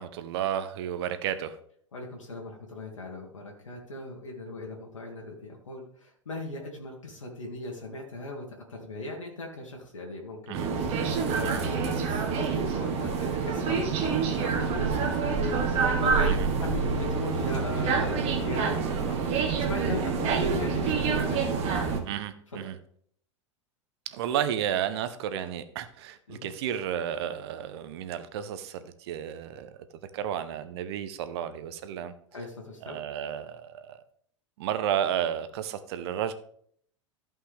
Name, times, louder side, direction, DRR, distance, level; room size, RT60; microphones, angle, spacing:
voice 1, 0.0-1.6 10.5-10.7 11.4-11.6 16.3-16.5 22.0-22.8 24.1-29.7 30.1-32.1 32.8-34.0 34.6-36.3, right 10 dB, 55° right, 12 dB, 1.0 m, -32 dB
voice 2, 1.9-19.2 19.7-21.6 22.5-22.6 26.3-26.5 32.3-33.0, left 2 dB, 80° left, -1 dB, 1.8 m, -38 dB
sound 1, 10.5-22.0, right 5 dB, 40° right, 1.7 m, -27 dB
14.5 x 5.5 x 3.5 m, 0.62 s
figure-of-eight pair, 90°, 16 cm